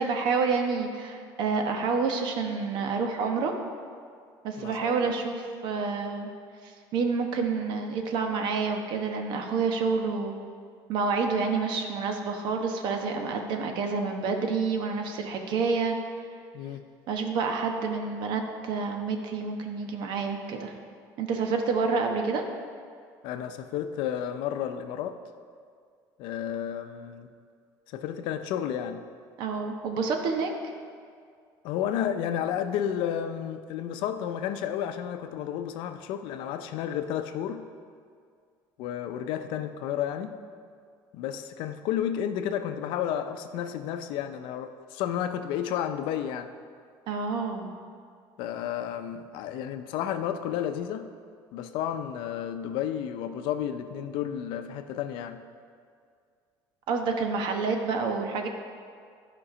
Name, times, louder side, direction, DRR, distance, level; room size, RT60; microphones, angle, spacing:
voice 1, 0.0-3.5 4.4-6.3 6.6-10.3 10.9-15.9 17.1-20.7 21.2-22.4 29.4-30.5 47.1-47.7 56.9-58.5, right 4 dB, 65° right, 4 dB, 1.0 m, -28 dB
voice 2, 4.6-5.2 16.5-16.8 23.2-25.2 26.2-27.3 27.9-29.1 31.6-37.6 38.8-40.4 41.1-46.5 48.4-51.1 51.5-55.5, left 9 dB, 75° left, 9 dB, 0.6 m, -32 dB
11.5 x 5.3 x 4.9 m, 2.2 s
cardioid pair, 125°, 8 cm